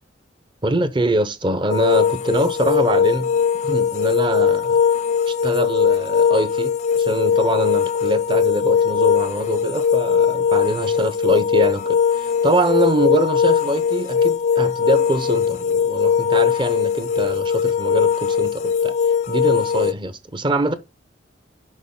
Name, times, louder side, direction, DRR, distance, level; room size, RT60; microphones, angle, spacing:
voice 1, 0.6-3.3 3.6-4.8 5.3-18.9 19.3-20.7, right 1 dB, 25° right, 0.7 m, -23 dB
sound 1, 1.7-19.9, left 7 dB, 35° left, 0.3 m, -20 dB
6.4 x 5.5 x 3.7 m
head